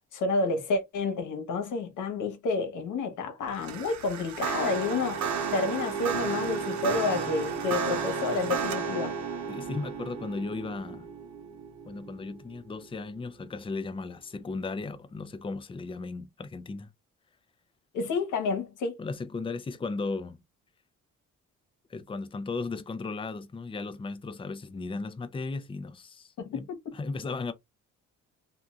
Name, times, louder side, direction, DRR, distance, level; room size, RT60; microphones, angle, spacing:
voice 1, 0.1-9.2 17.9-19.0 26.4-26.8, left 4 dB, 80° left, 1.1 m, -30 dB
sound 1, 3.5-12.8, right 6 dB, 70° right, 0.8 m, -33 dB
voice 2, 9.5-11.1 11.8-16.9 19.0-20.4 21.9-26.7 26.9-27.5, left 3 dB, 20° left, 0.5 m, -36 dB
2.8 x 2.5 x 2.3 m
cardioid pair, 90°, 30 cm